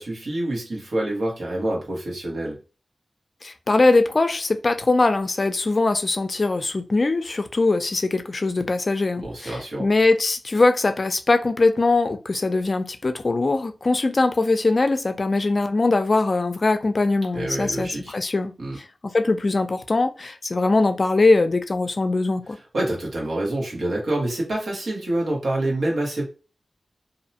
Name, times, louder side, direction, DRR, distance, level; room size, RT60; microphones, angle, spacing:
voice 1, 0.0-2.6 9.2-9.9 17.3-18.1 18.6-18.8 22.7-26.3, right 1 dB, 90° right, 1.2 m, -27 dB
voice 2, 3.4-22.6, left 3 dB, 50° left, 0.4 m, -21 dB
2.6 x 2.1 x 2.8 m
wide cardioid pair, 70°, 0 cm